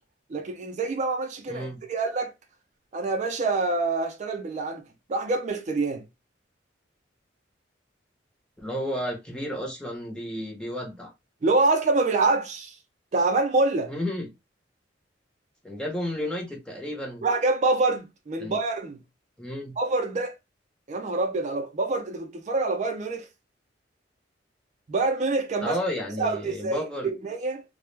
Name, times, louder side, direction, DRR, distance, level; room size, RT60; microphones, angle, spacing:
voice 1, 0.3-2.3 2.9-4.8 5.1-6.0 11.4-12.8 13.1-13.9 17.2-19.0 19.8-20.3 20.9-23.3 24.9-25.8 26.2-27.6, right 3 dB, 40° right, 0.4 m, -26 dB
voice 2, 1.5-1.8 8.6-11.1 13.9-14.3 15.6-17.3 18.4-18.6 19.4-19.7 25.6-27.1, equal, 5° left, 0.6 m, -32 dB
2.1 x 2.0 x 3.2 m
head